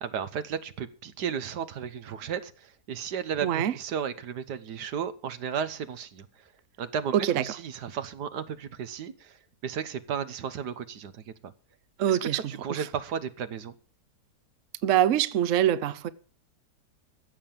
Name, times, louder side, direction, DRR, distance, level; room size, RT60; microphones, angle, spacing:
voice 1, 0.0-6.3 6.8-9.4 9.6-11.5 12.1-13.7, right 7 dB, 75° right, 1.6 m, -34 dB
voice 2, 3.4-3.7 7.1-7.4 12.0-12.4 12.7-12.9 14.8-16.1, right 11 dB, 55° right, 1.0 m, -24 dB
15.5 x 7.0 x 7.5 m
omnidirectional pair, 1.8 m